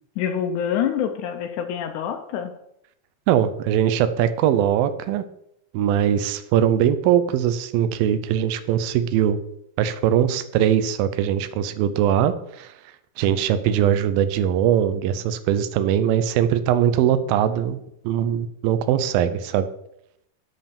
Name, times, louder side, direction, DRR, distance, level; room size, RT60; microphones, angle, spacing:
voice 1, 0.2-2.5, left 8 dB, 90° left, 5 dB, 1.7 m, -26 dB
voice 2, 3.3-5.2 5.7-9.4 9.8-12.7 13.2-17.8 18.0-19.7, right 10 dB, 80° right, 11 dB, 2.3 m, -21 dB
7.9 x 5.4 x 6.9 m, 0.77 s
omnidirectional pair, 4.5 m